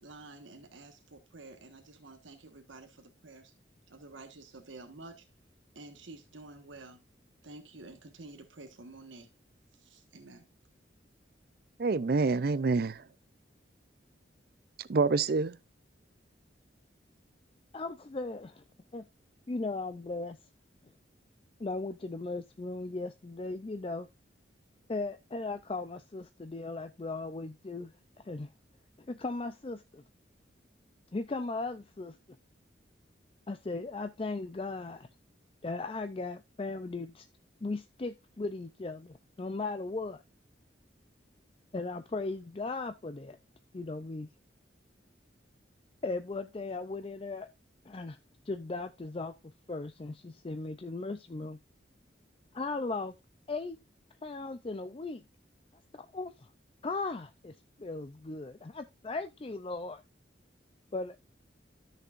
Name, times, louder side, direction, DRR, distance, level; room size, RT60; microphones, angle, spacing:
voice 1, 0.0-3.5 3.9-5.3 5.7-7.0 7.4-9.3 9.7-10.4, right 2 dB, 90° right, 1.4 m, -50 dB
voice 2, 11.8-13.0 14.9-15.6, right 4 dB, 55° right, 0.4 m, -27 dB
voice 3, 17.7-18.6 18.9-19.0 19.5-20.4 21.6-24.1 24.9-28.5 29.1-30.0 31.1-32.2 33.5-35.1 35.6-37.3 37.6-40.2 41.7-43.4 43.7-44.3 46.0-47.5 47.9-48.2 48.5-49.3 49.7-51.6 52.5-53.1 53.5-53.8 54.2-55.2 55.9-56.5 56.8-60.0 60.9-61.2, left 3 dB, 30° left, 0.4 m, -37 dB
13.5 x 6.6 x 2.5 m
head